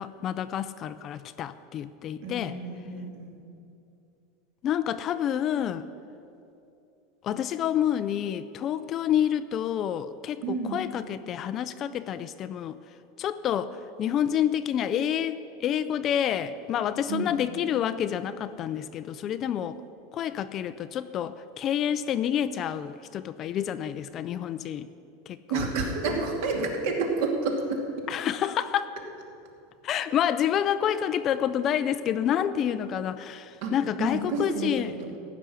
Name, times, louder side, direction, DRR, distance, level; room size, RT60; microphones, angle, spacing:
voice 1, 0.0-2.6 4.6-5.9 7.2-12.8 13.2-19.8 20.1-24.9 25.3-25.6 28.1-29.0 29.8-34.9, left 9 dB, 25° left, 13 dB, 0.4 m, -28 dB
voice 2, 2.2-3.4 10.4-10.8 17.1-17.4 25.5-27.8 33.6-34.7, right 3 dB, 55° right, 1 dB, 2.5 m, -29 dB
15.0 x 6.1 x 10.0 m, 2.7 s
supercardioid pair, 170°, 0 cm